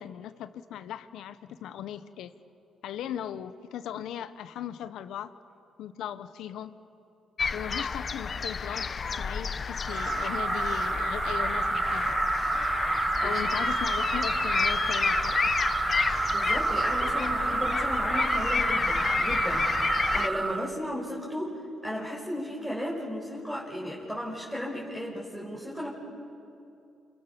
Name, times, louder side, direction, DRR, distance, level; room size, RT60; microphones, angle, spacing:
voice 1, 0.0-2.3 2.8-5.3 5.8-6.7 7.5-12.2 13.2-15.5, left 10 dB, 80° left, 12 dB, 1.1 m, -38 dB
sound 1, 7.4-20.3, left 5 dB, 40° left, 0.9 m, -30 dB
sound 2, 9.8-20.7, right 4 dB, 30° right, 1.1 m, -29 dB
voice 2, 16.3-25.9, equal, ahead, -5 dB, 5.4 m, -35 dB
29.0 x 28.0 x 7.0 m, 2.7 s
cardioid pair, 90°, 0 cm